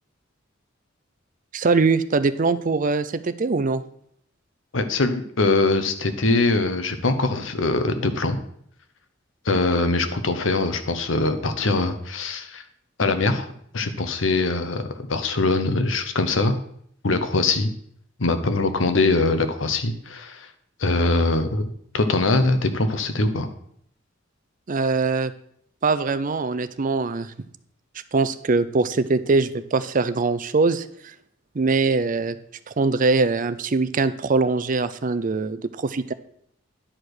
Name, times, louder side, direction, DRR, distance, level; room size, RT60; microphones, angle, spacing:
voice 1, 1.5-3.8 24.7-25.3 25.8-27.3 28.1-31.1 31.5-32.4 32.7-36.1, right 3 dB, 45° right, 13 dB, 0.5 m, -22 dB
voice 2, 4.7-8.4 9.4-12.6 13.0-13.5 13.7-16.5 17.0-17.7 18.2-20.5 20.8-21.7 21.9-23.5, left 3 dB, 75° left, 9 dB, 1.0 m, -22 dB
10.0 x 5.0 x 6.2 m, 0.66 s
head